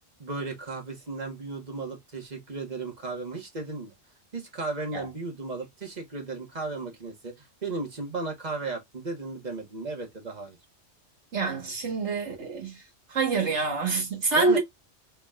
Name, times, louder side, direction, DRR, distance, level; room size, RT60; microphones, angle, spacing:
voice 1, 0.2-3.9 4.3-10.6 14.4-14.6, right 3 dB, 35° right, 1.4 m, -35 dB
voice 2, 11.3-12.8 13.1-14.6, right 3 dB, 70° right, 1.8 m, -26 dB
4.0 x 3.4 x 2.4 m
omnidirectional pair, 1.2 m